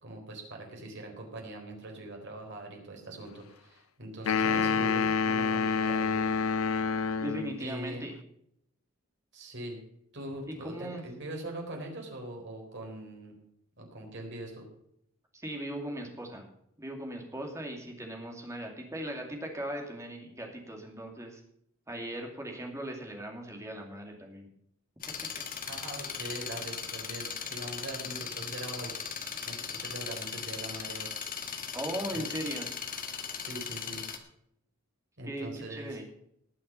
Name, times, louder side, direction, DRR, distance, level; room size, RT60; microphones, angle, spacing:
voice 1, 0.0-6.3 7.6-8.1 9.3-9.8 10.1-13.3 13.8-14.6 25.7-28.9 29.5-31.1 32.1-32.2 33.4-34.0 35.2-36.0, right 1 dB, 60° right, 1 dB, 4.0 m, -42 dB
sound 1, 4.3-7.6, left 5 dB, 80° left, 0.5 m, -27 dB
voice 2, 7.2-8.1 10.6-11.0 15.3-16.4 16.8-21.4 21.9-24.5 31.7-32.7 35.3-36.0, right 1 dB, 15° right, 2 dB, 2.4 m, -39 dB
sound 2, 25.0-34.2, left 7 dB, 40° left, 1.5 m, -38 dB
19.0 x 6.4 x 5.7 m, 0.74 s
head